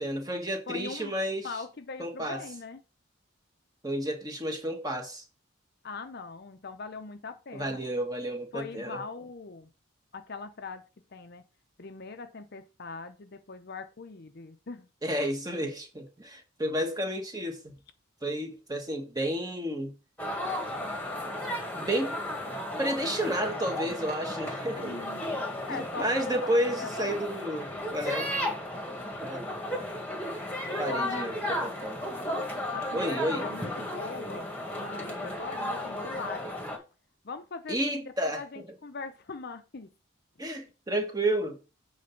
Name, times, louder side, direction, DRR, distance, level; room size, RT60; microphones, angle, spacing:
voice 1, 0.0-1.5 2.0-2.4 3.8-5.2 7.5-9.0 15.0-17.7 18.2-19.9 21.8-22.2 22.8-24.9 25.7-28.6 29.2-29.6 30.8-32.0 32.9-33.4 37.7-38.4 40.4-41.6, right 1 dB, 20° right, 1.5 m, -31 dB
voice 2, 0.7-1.1 1.4-2.8 5.8-7.8 8.5-9.7 10.1-10.8 11.1-11.4 11.8-14.9 24.8-25.2 25.7-26.3 26.8-27.6 30.8-31.6 32.7-34.5 34.8-36.4 37.2-39.9, left 4 dB, 50° left, 0.6 m, -41 dB
sound 1, 20.2-36.8, left 1 dB, 10° left, 1.6 m, -34 dB
7.7 x 4.0 x 5.8 m
head